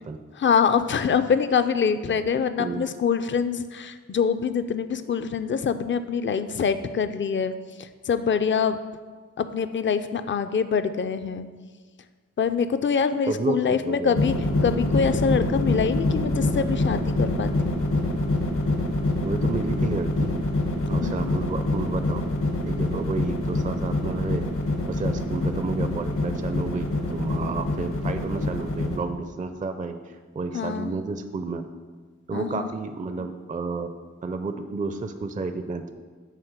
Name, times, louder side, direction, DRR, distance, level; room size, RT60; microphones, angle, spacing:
voice 1, 0.4-7.5 8.1-8.8 9.4-11.5 12.4-14.3 14.6-17.5 21.0-21.3 30.5-30.9 32.3-32.7, left 6 dB, 40° left, 11 dB, 0.4 m, -24 dB
voice 2, 2.6-2.9 13.3-14.2 19.2-20.3 20.9-22.2 22.7-24.4 24.9-31.6 32.3-33.9 34.2-36.0, right 3 dB, 25° right, 8 dB, 0.4 m, -31 dB
sound 1, 14.2-29.0, left 2 dB, 75° left, 1.3 m, -25 dB
9.2 x 3.7 x 6.5 m, 1.5 s
wide cardioid pair, 90°, 31 cm